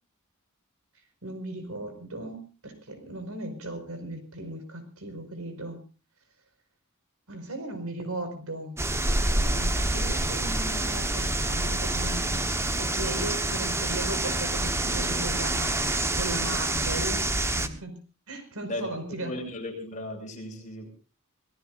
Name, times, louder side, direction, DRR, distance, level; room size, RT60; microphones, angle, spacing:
voice 1, 1.2-5.8 7.3-8.8 9.2-12.4 12.8-15.8 16.1-17.3 17.6-18.0 18.3-19.4, right 1 dB, 80° right, 8 dB, 5.2 m, -37 dB
sound 1, 8.8-17.7, right 2 dB, 10° right, 1.2 m, -27 dB
voice 2, 18.7-20.9, left 1 dB, 35° left, 2 dB, 6.0 m, -36 dB
26.5 x 18.0 x 2.6 m, 0.35 s
head